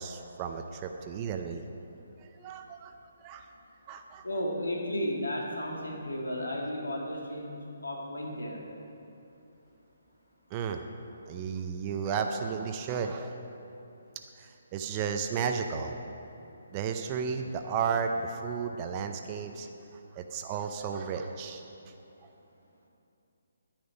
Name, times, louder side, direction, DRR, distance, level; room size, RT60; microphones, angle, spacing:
voice 1, 0.0-1.6 2.2-2.9 3.2-3.4 3.9-4.2 10.5-10.8 11.3-13.3 14.4-16.0 16.7-19.7 20.1-21.6, right 6 dB, 30° right, 5 dB, 0.6 m, -33 dB
voice 2, 4.2-8.6, left 1 dB, 85° left, -1 dB, 2.2 m, -34 dB
10.5 x 8.9 x 5.2 m, 2.8 s
figure-of-eight pair, 145°, 0 cm